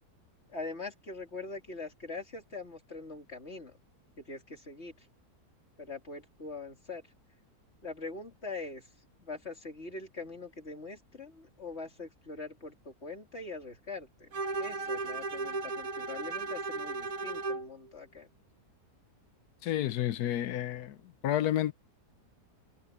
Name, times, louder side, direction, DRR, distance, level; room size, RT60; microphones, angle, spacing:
voice 1, 0.5-3.8 4.2-4.9 5.8-7.0 7.8-8.9 9.2-18.3, left 3 dB, 40° left, 3.4 m, -43 dB
Bowed string instrument, 14.3-17.7, right 3 dB, 60° right, 1.7 m, -35 dB
voice 2, 19.6-21.0 21.2-21.7, left 12 dB, 75° left, 1.2 m, -30 dB
omnidirectional pair, 1.7 m